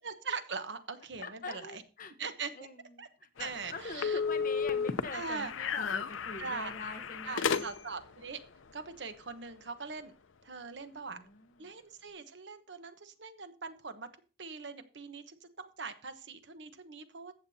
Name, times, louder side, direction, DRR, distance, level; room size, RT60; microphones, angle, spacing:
voice 1, 0.0-1.8 2.2-2.7 3.0-3.1 3.4-4.2 5.1-5.5 6.4-6.7 7.2-8.4 8.7-10.1 10.4-11.2 11.6-14.1 14.4-17.3, right 5 dB, 60° right, 9 dB, 1.1 m, -41 dB
voice 2, 1.2-2.1 2.5-7.7 11.1-11.7, left 3 dB, 45° left, 7 dB, 1.0 m, -44 dB
sound 1, 3.4-8.1, left 6 dB, 85° left, 0.7 m, -34 dB
14.5 x 8.1 x 2.8 m, 0.34 s
head